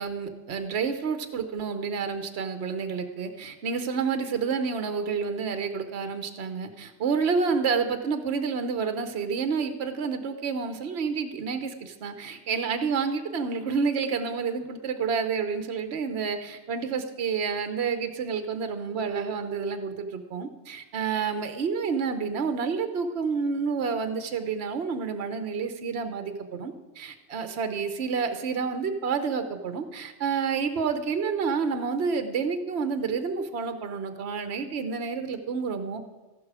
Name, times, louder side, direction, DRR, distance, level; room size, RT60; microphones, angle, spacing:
voice 1, 0.0-36.0, right 5 dB, 60° right, 8 dB, 1.1 m, -29 dB
14.0 x 11.5 x 4.8 m, 1.3 s
omnidirectional pair, 1.2 m